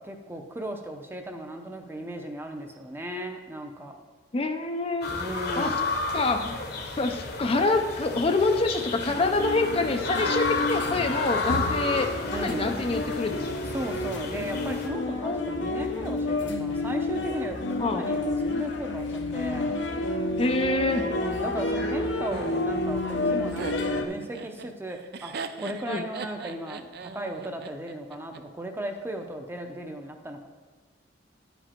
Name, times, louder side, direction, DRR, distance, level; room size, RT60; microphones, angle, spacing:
voice 1, 0.0-4.0 5.1-5.7 12.3-12.7 13.7-19.8 21.0-30.5, right 1 dB, 10° right, 4 dB, 0.7 m, -36 dB
voice 2, 4.3-5.1 5.6-5.7 6.1-6.6 7.0-12.1 12.4-13.6 15.2-15.4 17.8-18.0 20.4-21.0 25.9-26.0, left 3 dB, 30° left, 5 dB, 0.5 m, -26 dB
sound 1, 5.0-14.9, left 3 dB, 60° left, 1.1 m, -32 dB
sound 2, 9.1-24.1, left 2 dB, 80° left, 0.8 m, -30 dB
Laughter, 22.3-28.4, right 4 dB, 60° right, 0.5 m, -39 dB
10.5 x 5.1 x 4.4 m, 1.4 s
head